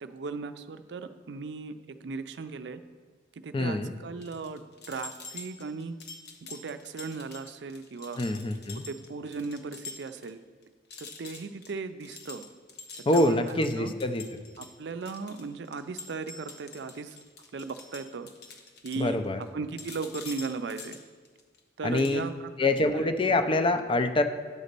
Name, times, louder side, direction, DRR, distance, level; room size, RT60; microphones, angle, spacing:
voice 1, 0.0-1.7 2.0-2.8 3.4-4.6 4.9-6.0 6.5-8.2 8.7-10.4 11.0-12.5 13.1-13.9 14.6-17.2 17.5-18.3 18.8-19.3 19.5-21.0 21.8-22.3 22.9-23.3, right 4 dB, 70° right, 10 dB, 0.5 m, -37 dB
voice 2, 3.5-3.9 8.2-8.8 13.1-14.3 19.0-19.4 21.8-22.2 22.6-24.2, left 2 dB, 30° left, 8 dB, 0.5 m, -25 dB
sound 1, 4.2-10.3 10.6-10.7 10.9-19.5 19.8-21.6 21.9-22.2, left 4 dB, 65° left, 0.9 m, -46 dB
9.7 x 4.1 x 6.7 m, 1.4 s
head